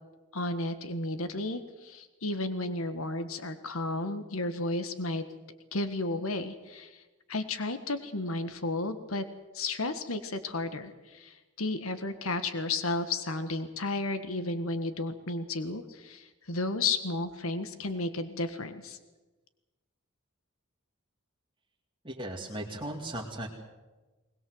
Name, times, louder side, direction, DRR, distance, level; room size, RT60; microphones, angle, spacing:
voice 1, 0.3-5.2 5.7-7.0 7.3-9.2 9.5-19.0, left 2 dB, 80° left, 10 dB, 1.5 m, -33 dB
voice 2, 22.0-23.5, right 1 dB, 25° right, -2 dB, 2.3 m, -37 dB
21.0 x 21.0 x 7.8 m, 1.2 s
head